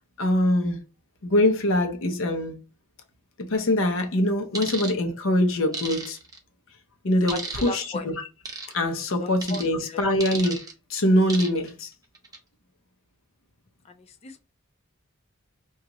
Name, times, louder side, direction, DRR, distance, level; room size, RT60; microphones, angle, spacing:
voice 1, 0.2-0.8 1.2-2.6 3.5-6.2 7.0-8.1 8.7-10.6 10.9-11.9, left 1 dB, 60° left, 0.7 m, -23 dB
sound 1, 4.5-4.9 5.7-6.4 7.3-7.8 8.5-8.7 9.4-9.7 10.2-10.7 11.3-11.7 12.1-12.4, right 3 dB, 15° right, 0.6 m, -34 dB
voice 2, 7.3-8.1 9.2-10.0 14.2-14.4, left 3 dB, 30° left, 0.3 m, -36 dB
2.9 x 2.4 x 3.7 m
head